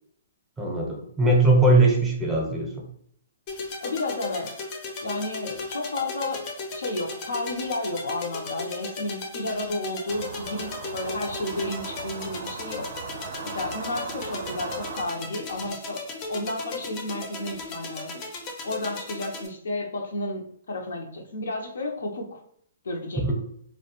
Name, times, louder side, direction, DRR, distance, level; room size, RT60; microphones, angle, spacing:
voice 1, 0.6-2.9 23.2-23.3, right 2 dB, 10° right, -2 dB, 0.6 m, -20 dB
sound 1, 3.5-19.5, left 3 dB, 35° left, 0.5 m, -36 dB
voice 2, 3.8-4.5 5.0-6.4 6.7-12.9 13.4-16.0 16.3-18.2 18.6-22.4 22.8-23.3, left 2 dB, 80° left, 2 dB, 0.5 m, -32 dB
sound 2, 10.1-15.1, right 5 dB, 60° right, 0.4 m, -38 dB
2.3 x 2.1 x 2.8 m, 0.66 s
hypercardioid pair, 140°, 0 cm